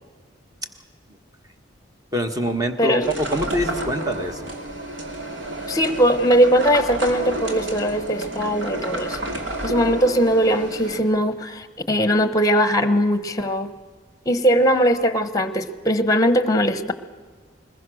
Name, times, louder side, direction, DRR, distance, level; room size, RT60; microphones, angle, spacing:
voice 1, 2.1-4.5, equal, 20° right, 6 dB, 1.5 m, -24 dB
sound 1, 3.0-11.0, right 1 dB, 85° right, 2.7 m, -30 dB
voice 2, 5.7-9.2 9.6-13.7 14.3-16.9, equal, 20° left, 12 dB, 1.1 m, -20 dB
21.5 x 21.0 x 6.3 m, 1.4 s
head